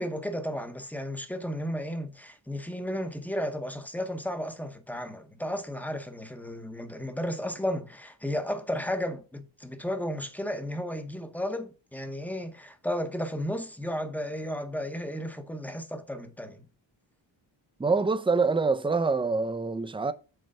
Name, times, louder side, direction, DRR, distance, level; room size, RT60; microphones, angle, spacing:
voice 1, 0.0-16.7, equal, 5° left, 0.7 m, -33 dB
voice 2, 17.8-20.1, right 4 dB, 10° right, 0.4 m, -25 dB
7.7 x 4.5 x 5.3 m
wide cardioid pair, 170°, 48 cm